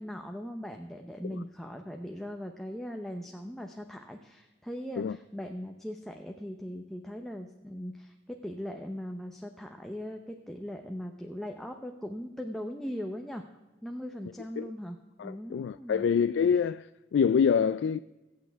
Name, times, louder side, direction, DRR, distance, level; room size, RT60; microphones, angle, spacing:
voice 1, 0.0-13.4 13.8-15.0 15.2-16.1, equal, ahead, 0.7 m, -39 dB
voice 2, 15.2-18.0, left 6 dB, 80° left, 0.3 m, -26 dB
23.5 x 8.5 x 3.5 m
head